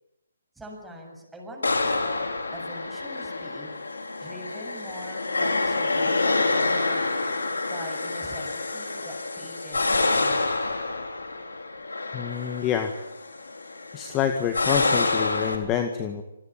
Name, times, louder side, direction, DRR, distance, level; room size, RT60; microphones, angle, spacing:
voice 1, 0.5-3.7 4.2-7.0 7.7-10.8, right 1 dB, 5° right, 0 dB, 7.6 m, -43 dB
sound 1, 1.6-15.6, left 3 dB, 85° left, 4.1 m, -27 dB
voice 2, 12.1-12.9 13.9-16.2, left 9 dB, 20° left, 6 dB, 2.0 m, -27 dB
27.0 x 20.5 x 8.8 m, 0.88 s
figure-of-eight pair, 145°, 0 cm